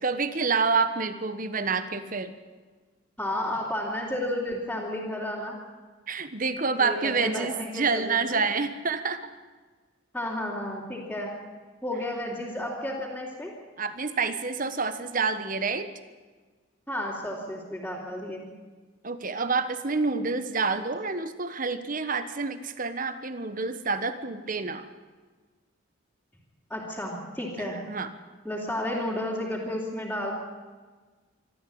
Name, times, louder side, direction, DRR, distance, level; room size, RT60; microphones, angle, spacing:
voice 1, 0.0-2.3 6.1-9.3 13.8-15.9 19.0-24.9 27.8-28.1, right 4 dB, 40° right, 11 dB, 1.3 m, -28 dB
voice 2, 3.2-5.6 6.8-8.4 10.1-11.3 11.8-13.5 16.9-18.5 26.7-27.8 28.4-30.3, left 1 dB, 5° left, -8 dB, 3.3 m, -32 dB
24.5 x 13.5 x 8.7 m, 1.4 s
head